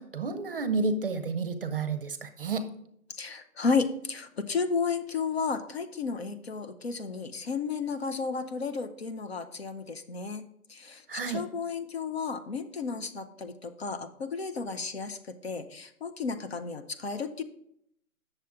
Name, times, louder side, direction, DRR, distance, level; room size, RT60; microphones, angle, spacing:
voice 1, 0.0-2.7 11.1-11.4, right 4 dB, 40° right, 11 dB, 0.6 m, -31 dB
voice 2, 3.1-17.4, left 5 dB, 45° left, 9 dB, 0.6 m, -33 dB
8.2 x 6.8 x 3.5 m, 0.72 s
figure-of-eight pair, 150°, 44 cm